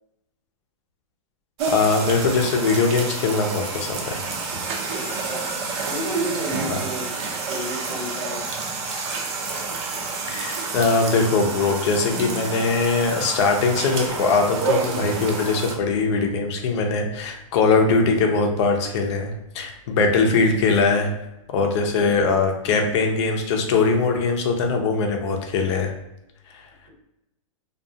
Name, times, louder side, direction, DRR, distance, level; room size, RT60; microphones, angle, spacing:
sound 1, 1.6-15.7, right 4 dB, 50° right, 0.5 m, -29 dB
voice 1, 1.7-4.3 6.7-6.8 10.3-21.1 21.5-25.9, left 4 dB, 55° left, 3 dB, 0.5 m, -21 dB
voice 2, 4.8-5.5 5.8-7.1 7.4-8.4 19.8-20.4, left 1 dB, 80° right, -2 dB, 1.2 m, -33 dB
2.3 x 2.3 x 2.7 m, 0.88 s
hypercardioid pair, 130°, 18 cm